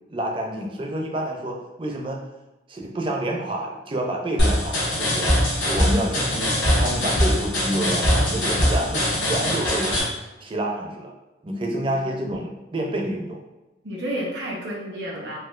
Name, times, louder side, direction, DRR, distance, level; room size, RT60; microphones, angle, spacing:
voice 1, 0.1-2.2 2.7-5.3 5.6-10.0 10.4-11.1 11.4-13.4, right 1 dB, 30° right, 0 dB, 0.4 m, -28 dB
sound 1, 4.4-10.0, equal, 80° left, 1.2 m, -22 dB
voice 2, 11.8-12.4 13.8-15.4, equal, 80° right, -1 dB, 0.8 m, -31 dB
4.2 x 2.3 x 2.4 m, 1.0 s
head